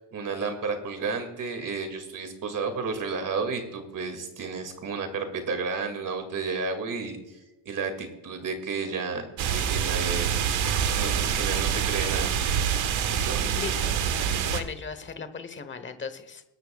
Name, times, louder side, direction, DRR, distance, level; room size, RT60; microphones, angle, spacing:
voice 1, 0.0-7.4 7.7-10.3 10.9-12.4 13.0-13.5, right 4 dB, 40° right, 6 dB, 2.3 m, -32 dB
sound 1, 9.4-14.6, right 8 dB, 70° right, 1.4 m, -26 dB
voice 2, 13.5-16.4, left 5 dB, 25° left, 10 dB, 1.1 m, -38 dB
21.0 x 12.0 x 2.4 m, 1.0 s
cardioid pair, 170°, 47 cm